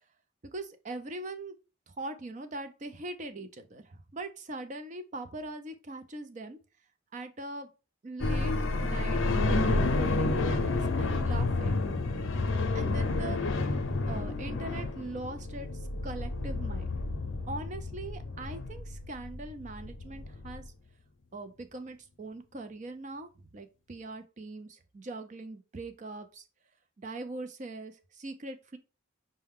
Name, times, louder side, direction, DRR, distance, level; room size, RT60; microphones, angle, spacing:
voice 1, 0.5-1.5 2.0-6.6 7.1-7.7 8.0-8.5 8.8-11.8 12.7-13.6 14.1-17.0 17.5-20.6 21.3-26.4 27.0-28.8, right 2 dB, 35° right, 8 dB, 0.4 m, -41 dB
sound 1, 8.2-20.7, left 2 dB, 75° left, 0.6 m, -30 dB
5.5 x 2.2 x 3.6 m, 0.31 s
head